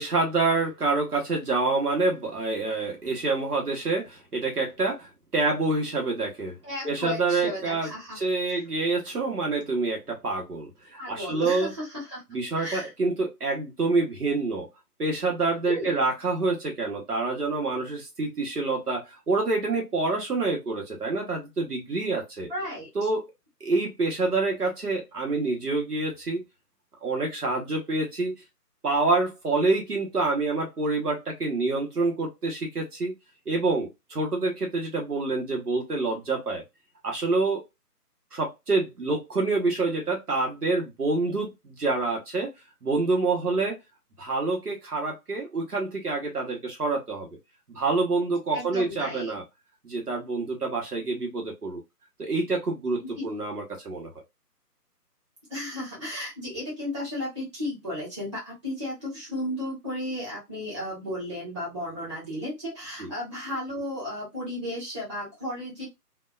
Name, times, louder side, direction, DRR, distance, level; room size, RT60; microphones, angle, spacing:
voice 1, 0.0-5.1 5.3-6.6 6.8-7.9 8.1-11.7 12.3-14.7 15.0-22.5 22.9-23.3 23.6-26.4 27.0-28.4 28.8-33.1 33.5-36.6 37.0-37.6 38.3-42.5 42.8-43.8 44.2-47.3 47.7-49.4 49.8-51.8 52.2-54.1, right 3 dB, 65° right, 0 dB, 1.1 m, -27 dB
voice 2, 6.6-8.2 11.0-12.2 12.6-12.9 15.6-15.9 22.5-22.9 48.5-49.4 53.1-53.3 55.5-65.8, left 1 dB, 20° right, -8 dB, 1.2 m, -34 dB
2.7 x 2.2 x 2.2 m, 0.21 s
figure-of-eight pair, 150°, 48 cm